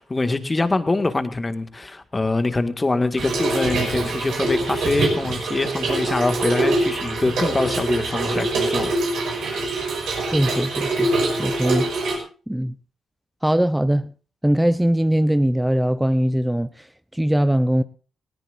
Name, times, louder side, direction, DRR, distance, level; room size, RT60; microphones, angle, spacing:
voice 1, 0.0-9.6, left 2 dB, 30° left, 2.0 m, -24 dB
Trickle dribble / Fill (with liquid), 3.2-12.2, right 2 dB, 75° right, 6.1 m, -24 dB
voice 2, 10.3-11.1 11.4-11.9 12.5-12.7 13.4-14.1 14.4-16.9 17.1-17.8, right 1 dB, 5° right, 0.7 m, -20 dB
18.5 x 18.0 x 2.6 m
hypercardioid pair, 45°, 0 cm